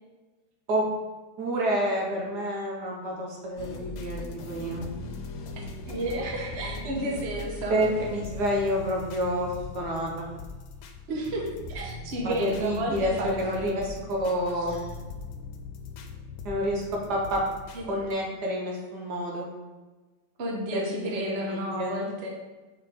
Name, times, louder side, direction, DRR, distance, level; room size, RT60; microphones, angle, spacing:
voice 1, 1.4-4.8 7.7-10.3 12.2-14.8 16.4-17.4 17.9-19.5 20.7-21.0 21.2-21.9, equal, 60° right, -1 dB, 1.4 m, -29 dB
sound 1, 3.6-18.1, left 3 dB, 90° left, 1.5 m, -40 dB
voice 2, 5.9-7.7 11.1-13.7 17.7-17.9 20.4-22.3, right 1 dB, 45° right, -1 dB, 0.9 m, -32 dB
4.7 x 3.9 x 5.1 m, 1.2 s
omnidirectional pair, 2.2 m